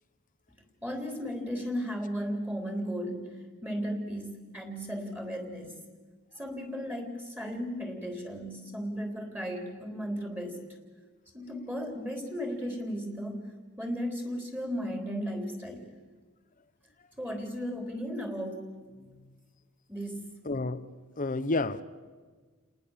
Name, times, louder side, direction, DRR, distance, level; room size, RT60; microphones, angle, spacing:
voice 1, 0.8-5.8 6.4-10.6 11.3-15.9 17.2-19.3 19.9-20.4, equal, 10° right, 4 dB, 3.6 m, -35 dB
voice 2, 20.4-20.9 21.2-21.8, left 2 dB, 40° left, 12 dB, 0.8 m, -30 dB
30.0 x 19.5 x 7.3 m, 1.4 s
head